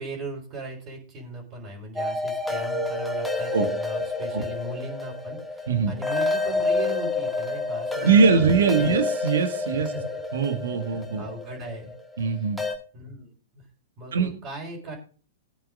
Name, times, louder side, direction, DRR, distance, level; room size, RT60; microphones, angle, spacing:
voice 1, 0.0-9.0 9.9-10.2 10.9-11.9 12.2-12.4 12.9-13.6 14.0-15.0, right 1 dB, 35° right, -1 dB, 4.3 m, -38 dB
sound 1, 2.0-12.8, left 3 dB, ahead, 1.9 m, -29 dB
voice 2, 8.0-9.9 10.3-11.2 12.2-12.6 14.1-14.3, right 5 dB, 70° right, 9 dB, 1.7 m, -22 dB
20.0 x 8.9 x 2.5 m, 0.39 s
hypercardioid pair, 110°, 0 cm